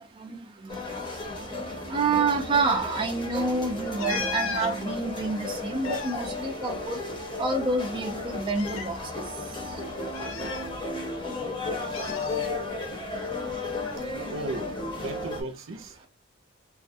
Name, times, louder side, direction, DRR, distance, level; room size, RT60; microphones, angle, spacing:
voice 1, 0.2-0.8 1.9-7.0 7.4-9.2, right 3 dB, 25° right, 0.4 m, -28 dB
sound 1, 0.7-15.4, left 2 dB, 25° left, 0.8 m, -34 dB
sound 2, 4.0-4.7 5.6-7.3 7.6-7.7 8.5-9.0 10.1-11.2 11.9-12.5 13.7-14.0, left 6 dB, 80° left, 0.5 m, -36 dB
voice 2, 14.3-16.1, right 1 dB, 75° right, 0.5 m, -36 dB
2.4 x 2.1 x 2.6 m
head